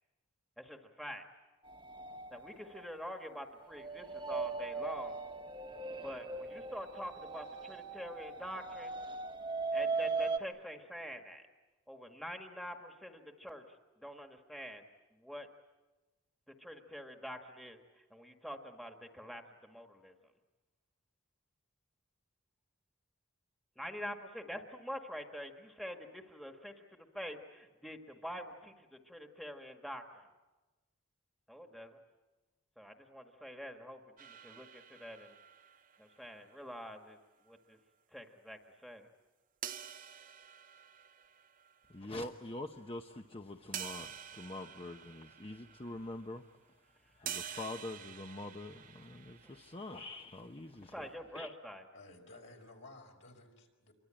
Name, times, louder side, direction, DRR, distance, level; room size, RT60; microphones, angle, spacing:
voice 1, 0.6-1.2 2.3-5.2 6.0-9.0 9.7-11.4 11.9-13.6 14.0-14.8 15.2-15.5 16.6-20.1 23.8-30.2 31.5-32.0 32.8-34.0 34.3-35.3 36.0-37.2 37.5-37.8 38.1-39.1 50.9-51.8, equal, ahead, 1.6 m, -46 dB
sound 1, 1.6-10.4, right 4 dB, 25° right, 1.2 m, -39 dB
sound 2, 34.2-36.9 39.6-42.1 42.8-42.9 43.7-46.5 47.3-50.2, right 9 dB, 40° right, 0.8 m, -48 dB
voice 2, 41.9-46.5 47.2-51.1 51.3-51.5, left 2 dB, 30° left, 0.9 m, -45 dB
voice 3, 51.9-53.9, left 2 dB, 65° left, 5.1 m, -55 dB
27.5 x 23.5 x 8.9 m
head